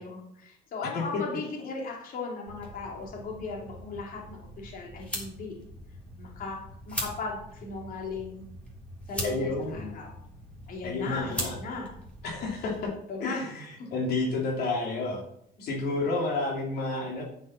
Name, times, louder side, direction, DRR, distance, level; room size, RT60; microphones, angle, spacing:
voice 1, 0.0-5.6 6.2-6.6 6.9-8.5 9.1-10.1 10.7-12.0 13.1-13.5 13.8-13.9, left 3 dB, 60° left, -1 dB, 2.9 m, -37 dB
sound 1, 2.5-12.8, equal, 5° left, 3.8 m, -41 dB
voice 2, 9.2-9.9 10.8-11.5 12.2-12.9 13.2-13.6 13.9-15.2 15.6-17.2, left 3 dB, 75° left, -2 dB, 2.9 m, -30 dB
9.9 x 6.3 x 5.7 m, 0.71 s
cardioid pair, 110°, 17 cm